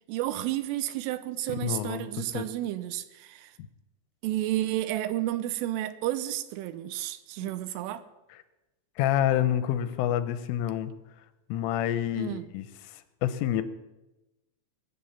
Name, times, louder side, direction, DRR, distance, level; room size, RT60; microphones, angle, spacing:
voice 1, 0.1-3.5 4.2-8.0 12.2-12.5, right 14 dB, 85° right, 3.3 m, -31 dB
voice 2, 1.6-2.1 2.3-2.4 7.4-7.5 9.0-10.9 11.5-12.7 13.2-13.6, left 11 dB, 85° left, 3.3 m, -27 dB
22.0 x 7.5 x 7.2 m
omnidirectional pair, 5.8 m